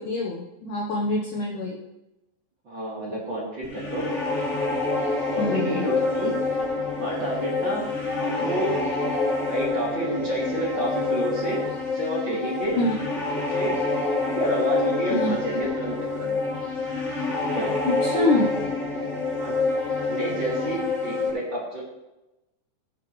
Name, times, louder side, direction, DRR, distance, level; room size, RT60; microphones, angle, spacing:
voice 1, 0.0-1.8 5.4-5.9 12.8-13.0 15.1-15.4 17.8-18.5, left 2 dB, 85° left, -2 dB, 1.7 m, -25 dB
voice 2, 2.6-4.1 5.3-6.3 6.9-7.9 8.2-8.7 9.5-11.6 11.9-12.8 13.4-13.8 14.2-16.3 17.4-17.8 19.3-19.6 20.0-21.8, right 1 dB, 30° right, -5 dB, 2.6 m, -29 dB
sound 1, 3.6-21.3, left 3 dB, 20° left, 4.0 m, -27 dB
17.0 x 9.1 x 3.2 m, 0.97 s
omnidirectional pair, 5.3 m